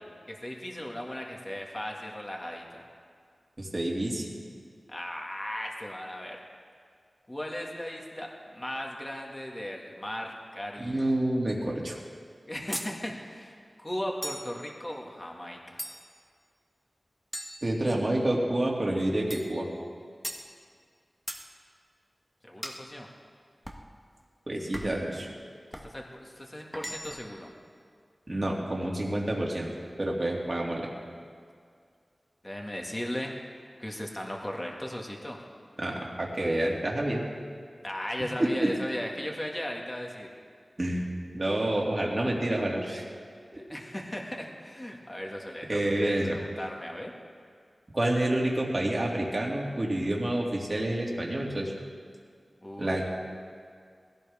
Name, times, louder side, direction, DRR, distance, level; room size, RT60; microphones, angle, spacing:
voice 1, 0.3-2.9 4.9-6.4 7.3-11.1 12.5-15.8 22.4-23.1 25.7-27.5 32.4-33.3 33.8-35.4 37.8-40.3 43.5-47.1 52.6-53.1, left 1 dB, 20° left, 0 dB, 2.0 m, -37 dB
voice 2, 3.6-4.3 10.8-12.0 17.6-19.7 24.5-25.3 28.3-29.7 30.0-30.9 35.8-37.2 38.2-38.7 40.8-41.1 41.3-43.0 43.5-43.6 45.7-46.4 47.9-51.7 52.8-53.1, right 1 dB, 40° right, -2 dB, 2.6 m, -28 dB
sound 1, 12.7-13.0 14.2-14.6 15.8-16.2 17.3-18.2 19.3-19.6 20.2-20.5 21.3-21.5 22.6-22.9 23.7-23.9 24.7-25.1 25.7-25.9 26.7-27.3, equal, ahead, 1.3 m, -39 dB
20.5 x 16.5 x 3.6 m, 2.1 s
wide cardioid pair, 85°, 0 cm